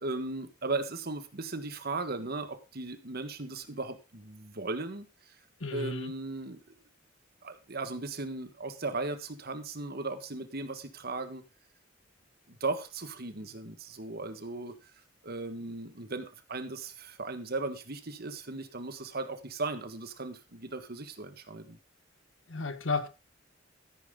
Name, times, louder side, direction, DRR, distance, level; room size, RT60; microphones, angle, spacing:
voice 1, 0.0-5.1 5.7-6.6 7.4-11.4 12.5-14.7 15.2-21.8, right 3 dB, 50° right, 1.5 m, -37 dB
voice 2, 5.6-6.1 22.5-23.1, left 3 dB, 80° left, 1.5 m, -32 dB
14.0 x 9.5 x 3.8 m
head